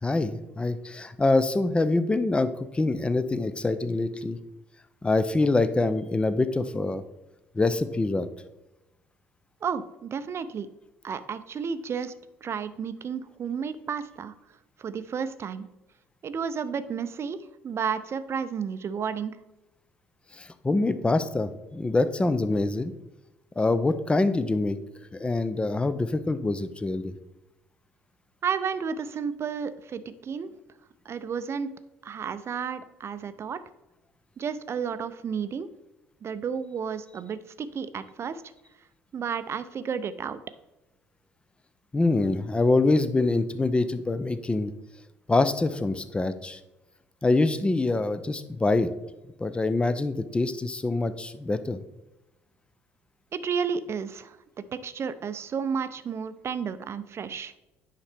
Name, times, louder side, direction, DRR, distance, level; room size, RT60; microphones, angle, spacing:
voice 1, 0.0-4.4 5.0-7.0 7.6-8.3 20.4-22.9 23.6-24.8 25.1-27.1 41.9-44.7 45.3-46.6 47.2-48.9 49.4-51.8, left 2 dB, 15° left, 12 dB, 0.5 m, -25 dB
voice 2, 9.6-10.7 11.0-12.1 12.4-14.3 14.8-15.7 16.2-19.3 28.4-30.5 31.1-31.7 32.0-33.6 34.4-35.7 36.2-38.4 39.1-40.4 53.3-54.4 54.8-57.5, right 6 dB, 40° right, 13 dB, 0.5 m, -32 dB
9.7 x 5.7 x 3.4 m, 1.0 s
figure-of-eight pair, 55°, 7 cm